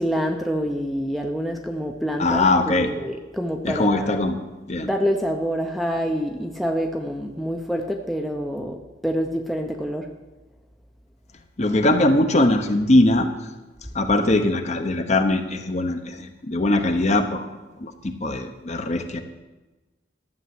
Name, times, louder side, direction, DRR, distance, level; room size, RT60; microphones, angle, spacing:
voice 1, 0.0-4.2 4.8-10.1, equal, ahead, 2 dB, 0.7 m, -26 dB
voice 2, 2.2-2.9 3.6-4.4 4.7-4.9 11.6-13.3 13.9-17.5 17.8-19.2, left 2 dB, 35° left, 7 dB, 1.0 m, -21 dB
12.0 x 7.1 x 7.8 m, 1.1 s
head